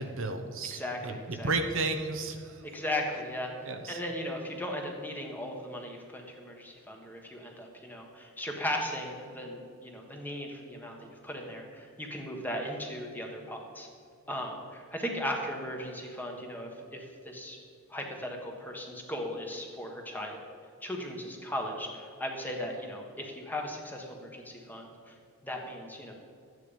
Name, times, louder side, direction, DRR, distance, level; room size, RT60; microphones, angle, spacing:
voice 1, 0.0-1.1 1.4-2.6 3.7-4.0, right 3 dB, 60° right, 6 dB, 0.9 m, -33 dB
voice 2, 0.7-1.5 2.6-13.9 14.3-17.6 17.9-20.4 20.8-25.2 25.4-26.1, left 1 dB, 10° left, 1 dB, 1.5 m, -37 dB
13.5 x 9.3 x 5.3 m, 2.3 s
head